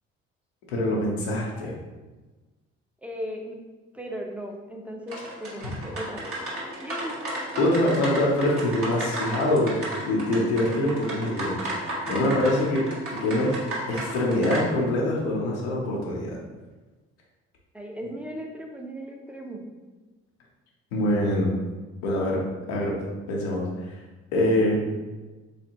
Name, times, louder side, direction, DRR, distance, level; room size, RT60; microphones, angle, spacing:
voice 1, 0.7-1.7 5.6-5.7 7.6-11.6 12.1-13.6 13.9-16.4 20.9-21.5 22.0-22.4 22.7-22.9 23.3-23.9 24.3-24.8, left 1 dB, 80° left, -3 dB, 0.8 m, -24 dB
voice 2, 3.0-3.6 3.9-7.2 17.7-19.6, equal, 5° right, 1 dB, 0.7 m, -37 dB
sound 1, 5.1-14.6, right 1 dB, 45° right, 1.3 m, -34 dB
3.3 x 3.3 x 2.9 m, 1.2 s
hypercardioid pair, 50°, 31 cm